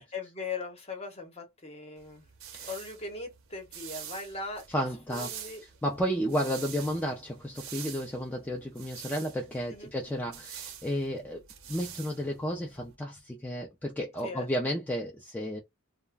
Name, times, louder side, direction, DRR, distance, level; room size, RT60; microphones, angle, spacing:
voice 1, 0.1-2.2 2.7-4.7 5.1-5.6 9.7-9.9 14.2-14.5, left 3 dB, 30° left, 0.8 m, -39 dB
sound 1, 2.0-13.0, right 9 dB, 65° right, 0.6 m, -46 dB
voice 2, 4.7-5.3 5.8-15.6, equal, 5° left, 0.4 m, -32 dB
2.3 x 2.1 x 3.4 m
head